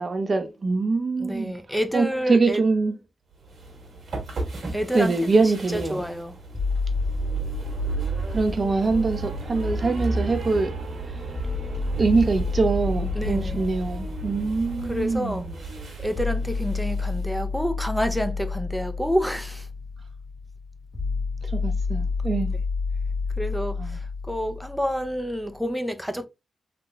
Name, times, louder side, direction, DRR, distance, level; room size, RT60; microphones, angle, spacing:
voice 1, 0.0-1.6 1.9-2.9 4.9-6.0 8.3-10.7 12.0-15.5 21.5-22.5 23.8-24.0, right 3 dB, 50° right, 0.7 m, -24 dB
voice 2, 1.2-2.6 4.7-6.4 13.1-13.7 14.8-15.5 16.0-19.7 23.4-26.3, equal, ahead, 0.5 m, -29 dB
sound 1, 3.4-17.3, right 3 dB, 75° right, 1.4 m, -33 dB
sound 2, 6.5-10.5 11.3-25.4, left 4 dB, 55° left, 1.5 m, -31 dB
3.4 x 2.9 x 2.2 m
cardioid pair, 50°, 0 cm